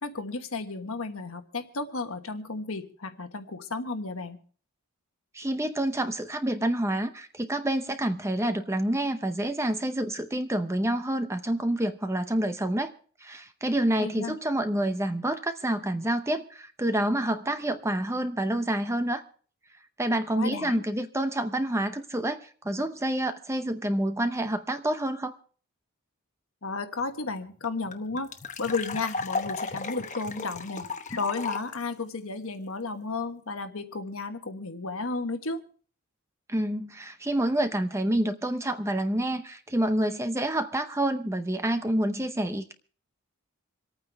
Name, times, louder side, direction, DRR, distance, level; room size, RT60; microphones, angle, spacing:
voice 1, 0.0-4.4 14.0-14.4 20.3-20.8 26.6-28.3 28.6-35.6, left 3 dB, 65° left, 7 dB, 1.3 m, -33 dB
voice 2, 5.3-12.9 13.2-19.2 20.0-25.4 36.5-42.7, right 1 dB, 10° right, 9 dB, 0.7 m, -28 dB
sound 1, 27.0-27.1 27.3-27.4 27.6-31.7, left 4 dB, 35° left, 1.0 m, -34 dB
27.0 x 9.1 x 3.4 m, 0.42 s
head